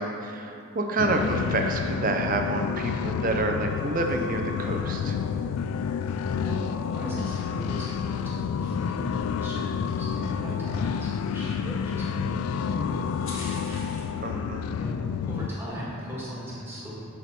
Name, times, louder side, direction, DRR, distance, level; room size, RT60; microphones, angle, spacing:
voice 1, 0.0-5.2 14.2-14.7, right 2 dB, 40° right, 3 dB, 0.7 m, -28 dB
sound 1, 1.0-15.5, left 7 dB, 85° left, 0.3 m, -29 dB
sound 2, 3.5-14.2, left 2 dB, 65° left, 1.7 m, -51 dB
voice 2, 6.3-13.9 14.8-17.0, equal, 10° right, -7 dB, 1.9 m, -38 dB
12.0 x 4.9 x 4.3 m, 2.6 s
head